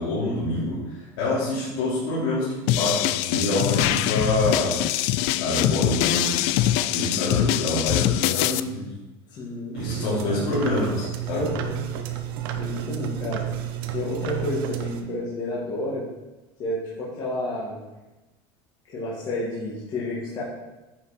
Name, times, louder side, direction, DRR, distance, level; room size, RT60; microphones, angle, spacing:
voice 1, 0.0-2.5 2.8-4.8 5.4-6.3 6.9-8.9 9.7-11.4, left 2 dB, 75° left, -9 dB, 2.9 m, -26 dB
sound 1, 2.7-8.6, left 13 dB, 55° left, 0.4 m, -23 dB
voice 2, 9.4-10.5 11.3-11.8 12.5-13.4 13.9-16.1 16.6-17.8 18.9-20.4, left 1 dB, 35° left, -8 dB, 2.1 m, -30 dB
sound 2, 9.7-15.0, right 11 dB, 80° right, 1.0 m, -31 dB
9.7 x 5.6 x 4.3 m, 1.1 s
cardioid pair, 165°, 12 cm